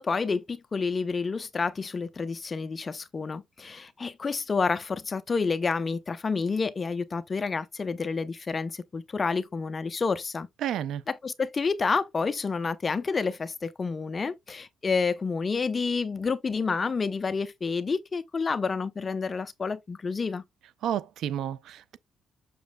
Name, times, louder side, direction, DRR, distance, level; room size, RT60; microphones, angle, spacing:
voice 1, 0.0-10.5 11.1-20.4, left 4 dB, 35° left, 0.7 m, -29 dB
voice 2, 10.6-11.0 20.8-22.0, right 10 dB, 75° right, 0.5 m, -31 dB
6.9 x 6.2 x 2.2 m
cardioid pair, 90°, 0 cm